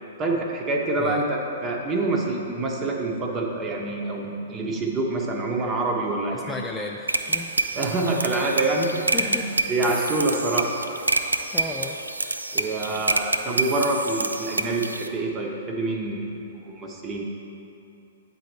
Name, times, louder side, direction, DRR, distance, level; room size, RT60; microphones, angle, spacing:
voice 1, 0.2-6.5 7.8-8.9 9.2-9.4 9.7-10.7 12.5-17.2, right 2 dB, 25° right, 0 dB, 0.9 m, -26 dB
voice 2, 6.3-7.6 8.3-8.5 9.1-9.5 9.9-10.1 11.5-12.0, left 2 dB, 10° left, 0 dB, 0.4 m, -34 dB
sound 1, 7.1-15.1, right 2 dB, 90° right, 0.3 m, -27 dB
8.1 x 4.1 x 4.5 m, 2.9 s
figure-of-eight pair, 115°, 0 cm